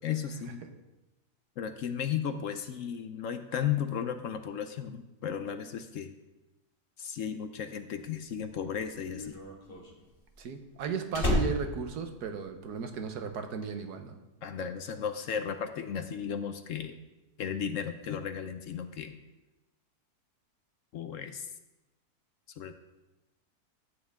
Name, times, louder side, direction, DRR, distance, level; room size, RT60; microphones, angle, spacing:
voice 1, 0.0-0.6 1.6-6.1 7.0-9.3 14.4-17.0 17.4-19.2 20.9-21.5 22.6-22.8, left 8 dB, 65° left, 9 dB, 0.9 m, -35 dB
Slam, 8.2-12.9 13.2-13.6, left 1 dB, 35° left, 1.7 m, -33 dB
voice 2, 10.4-14.2, right 6 dB, 80° right, 6 dB, 1.5 m, -35 dB
12.5 x 8.8 x 3.5 m, 1.0 s
omnidirectional pair, 1.7 m